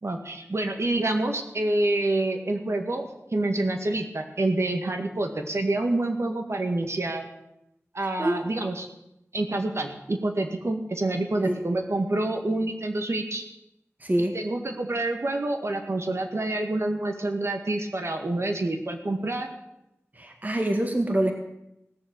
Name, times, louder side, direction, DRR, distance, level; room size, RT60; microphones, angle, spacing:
voice 1, 0.0-3.0 3.3-7.3 7.9-8.9 9.3-13.4 14.3-19.5, right 2 dB, 65° right, 4 dB, 2.0 m, -27 dB
voice 2, 14.0-14.4 20.1-21.3, right 1 dB, 35° right, 3 dB, 1.7 m, -25 dB
18.0 x 7.1 x 9.1 m, 0.87 s
wide cardioid pair, 50°, 5 cm